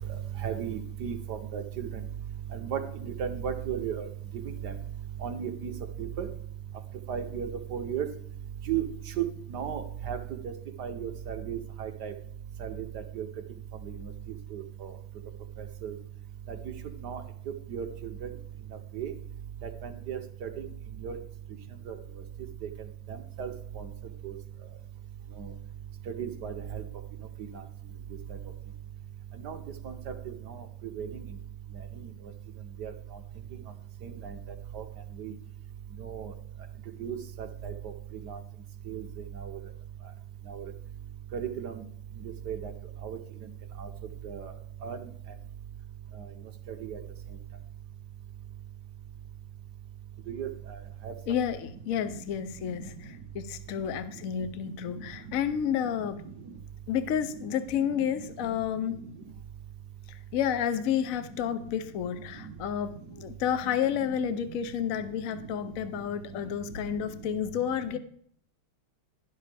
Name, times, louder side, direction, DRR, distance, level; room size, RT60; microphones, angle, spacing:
voice 1, 0.4-1.9 2.5-4.1 4.6-4.7 5.2-5.7 6.2-6.3 7.1-8.1 8.7-8.8 9.2-10.2 10.8-12.1 12.6-13.3 13.8-13.9 14.5-14.9 15.8-15.9 16.5-16.6 17.0-17.2 17.7-17.9 18.2-18.3 18.9-19.1 19.8-20.5 21.0-21.2 21.9-22.0 23.1-23.9 24.2-24.3 25.4-25.5 26.2-26.8 29.4-29.6 29.8-30.1 30.5-30.6 31.0-31.1 32.8-32.9 34.0-34.4 34.7-34.8 35.2-35.3 36.0-36.3 37.0-37.9 38.2-38.4 38.9-39.0 39.4-39.6 40.5-40.7 41.3-41.7 42.5-42.7 43.0-43.2 43.8-43.9 44.2-44.5 44.8-45.1 46.8-47.0 50.3-50.5 51.0-51.1 61.4-61.5 65.3-65.4, right 8 dB, 60° right, 6 dB, 1.2 m, -35 dB
voice 2, 51.3-56.2 56.9-59.0 60.1-68.0, left 9 dB, 85° left, 11 dB, 0.7 m, -30 dB
11.5 x 11.5 x 3.4 m, 0.63 s
omnidirectional pair, 2.3 m